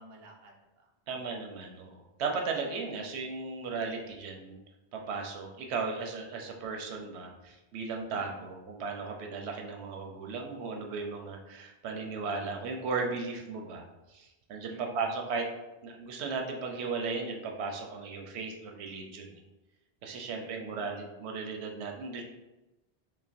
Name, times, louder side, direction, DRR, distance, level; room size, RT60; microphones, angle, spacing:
voice 1, 0.0-1.2 8.1-8.5 14.7-15.1 20.3-20.9, right 1 dB, 55° right, 0 dB, 0.7 m, -53 dB
voice 2, 1.1-4.6 4.9-15.5 15.8-19.3 20.0-22.2, right 4 dB, 90° right, 2 dB, 0.9 m, -36 dB
5.5 x 2.1 x 2.5 m, 1.0 s
omnidirectional pair, 1.1 m